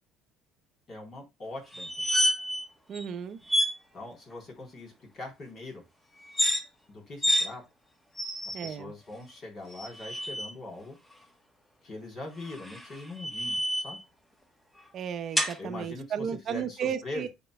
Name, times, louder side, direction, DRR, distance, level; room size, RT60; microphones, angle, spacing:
voice 1, 0.9-2.0 3.9-5.8 6.9-7.6 8.4-11.0 11.8-14.0 15.6-17.3, left 2 dB, 40° left, 3.7 m, -42 dB
sound 1, 1.7-2.6 2.9-3.1 3.5-3.7 6.2-6.6 7.2-7.5 8.2-8.7 9.7-10.5 12.4-14.0 15.4-15.6, equal, 5° left, 1.2 m, -28 dB
voice 2, 2.9-3.4 8.5-8.9 14.9-17.3, right 8 dB, 45° right, 0.8 m, -34 dB
10.5 x 4.5 x 2.2 m
cardioid pair, 120°, 0 cm